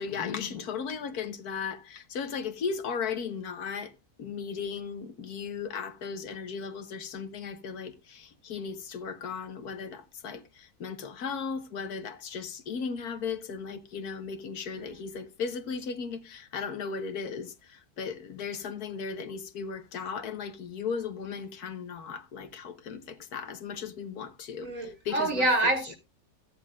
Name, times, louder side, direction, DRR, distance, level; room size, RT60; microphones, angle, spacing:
voice 1, 0.0-3.9 4.2-25.5, left 6 dB, 90° left, 1.6 m, -36 dB
voice 2, 24.6-26.0, right 2 dB, 60° right, 2.8 m, -27 dB
14.5 x 9.7 x 2.5 m
omnidirectional pair, 1.6 m